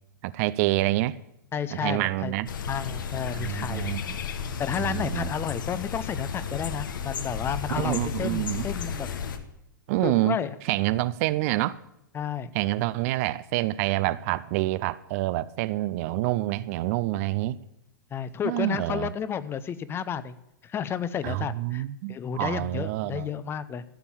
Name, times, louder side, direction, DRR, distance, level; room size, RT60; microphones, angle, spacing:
voice 1, 0.2-1.2 1.7-2.5 3.3-4.2 4.8-5.3 7.8-8.7 9.9-10.4 10.6-11.8 12.5-17.6 18.4-19.1 21.2-23.3, right 17 dB, 45° right, 0.5 m, -27 dB
voice 2, 1.5-2.3 2.7-4.0 4.6-9.1 10.0-10.5 12.1-12.5 18.1-20.4 20.6-23.8, left 8 dB, 20° left, 0.6 m, -32 dB
sound 1, 2.5-9.4, left 7 dB, 65° left, 1.3 m, -33 dB
14.0 x 7.1 x 7.1 m
figure-of-eight pair, 105°, 11 cm